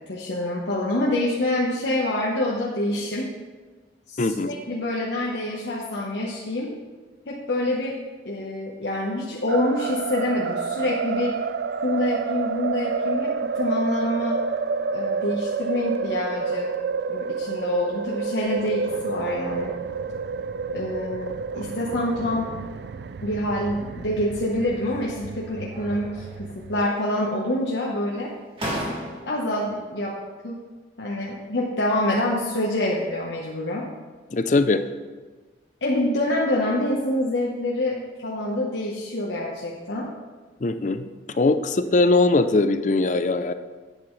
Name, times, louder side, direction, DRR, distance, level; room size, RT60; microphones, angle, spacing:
voice 1, 0.1-3.3 4.1-6.7 7.3-11.4 11.8-14.4 14.9-16.7 17.1-19.7 20.7-22.5 23.2-28.3 28.7-28.8 29.3-30.2 30.4-30.6 31.0-33.9 35.8-40.1, left 1 dB, 80° left, -4 dB, 1.2 m, -26 dB
voice 2, 4.2-4.5 34.3-34.8 40.6-43.5, left 3 dB, 45° left, 11 dB, 0.5 m, -21 dB
sound 1, 9.5-26.9, right 5 dB, 65° right, 0.3 m, -29 dB
sound 2, 24.7-25.3 25.7-26.5 26.7-27.5 28.1-28.2 28.6-29.5, equal, 30° right, 1.9 m, -35 dB
11.0 x 8.7 x 3.2 m, 1.3 s
head